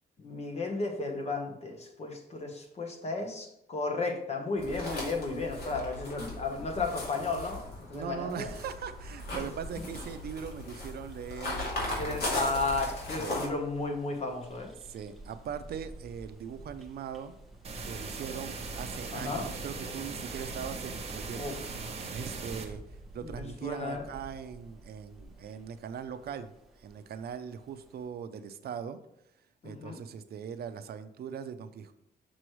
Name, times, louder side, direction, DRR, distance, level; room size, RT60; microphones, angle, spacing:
voice 1, 0.2-7.6 7.9-8.5 12.0-14.7 19.1-19.5 21.3-21.6 23.2-24.0 29.6-30.0, left 3 dB, 40° left, 3 dB, 1.0 m, -34 dB
sound 1, 4.6-13.5, left 2 dB, 70° left, 2.4 m, -38 dB
voice 2, 7.9-12.3 13.2-13.4 14.8-17.4 17.8-21.6 22.1-22.8 23.1-26.5 26.8-29.0 29.6-31.9, right 7 dB, 70° right, 10 dB, 0.5 m, -40 dB
sound 2, 8.4-28.1, right 2 dB, ahead, 1.0 m, -51 dB
sound 3, 17.6-22.6, right 4 dB, 40° right, 0.9 m, -39 dB
6.3 x 6.1 x 3.1 m, 0.81 s
wide cardioid pair, 180°, 17 cm